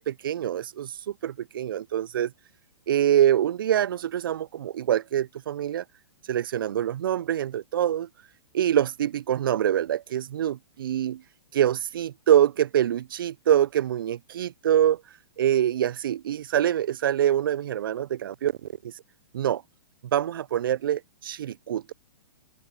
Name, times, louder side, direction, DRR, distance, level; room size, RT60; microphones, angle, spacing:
voice 1, 0.0-2.3 2.9-5.8 6.3-8.1 8.5-11.2 11.5-15.0 15.4-18.7 19.3-19.6 20.1-21.9, right 11 dB, 70° right, 0.4 m, -25 dB
hypercardioid pair, 115°, 12 cm